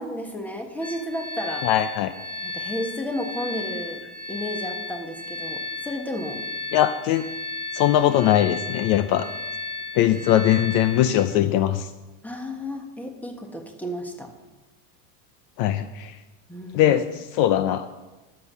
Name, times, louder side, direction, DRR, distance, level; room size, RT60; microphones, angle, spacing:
voice 1, 0.0-1.7 2.4-4.0 4.3-6.4 12.2-14.3 16.5-17.0, equal, 5° left, 4 dB, 1.4 m, -32 dB
sound 1, 0.8-11.2, left 3 dB, 30° left, 5.1 m, -34 dB
voice 2, 1.6-2.1 6.7-7.3 7.7-9.3 9.9-11.9 15.6-16.2 16.7-17.8, left 11 dB, 50° left, 12 dB, 0.6 m, -21 dB
11.5 x 7.6 x 6.8 m, 1.1 s
supercardioid pair, 125°, 47 cm